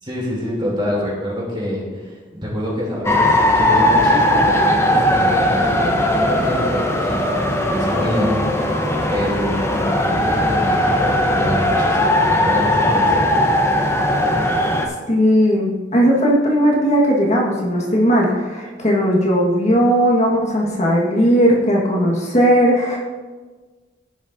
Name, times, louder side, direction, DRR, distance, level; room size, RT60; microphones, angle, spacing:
voice 1, 0.0-13.3, equal, 25° right, -4 dB, 3.0 m, -26 dB
sound 1, 3.0-14.9, left 1 dB, 15° left, 0.9 m, -18 dB
voice 2, 15.1-23.0, equal, 40° left, -2 dB, 1.6 m, -17 dB
15.5 x 6.2 x 2.7 m, 1.4 s
head